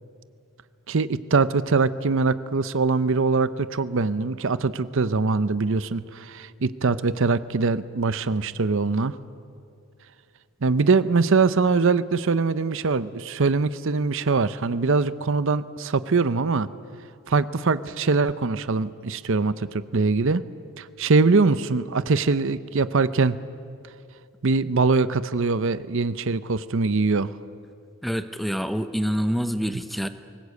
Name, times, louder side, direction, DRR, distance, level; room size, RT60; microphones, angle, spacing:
voice 1, 0.9-9.2 10.6-16.7 17.3-20.4 20.8-23.4 24.4-27.3, right 4 dB, 60° right, 15 dB, 0.7 m, -22 dB
voice 2, 28.0-30.1, equal, ahead, 10 dB, 0.7 m, -26 dB
23.0 x 20.0 x 8.3 m, 2.5 s
head